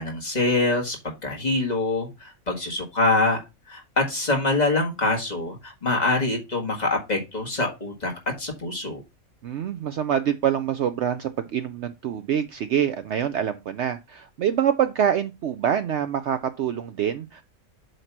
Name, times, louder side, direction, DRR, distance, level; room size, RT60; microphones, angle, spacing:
voice 1, 0.0-3.4 3.7-8.1 8.4-9.0, left 2 dB, 30° left, 1.8 m, -25 dB
voice 2, 9.4-17.4, right 9 dB, 65° right, 0.8 m, -25 dB
7.9 x 2.9 x 5.9 m
omnidirectional pair, 1.5 m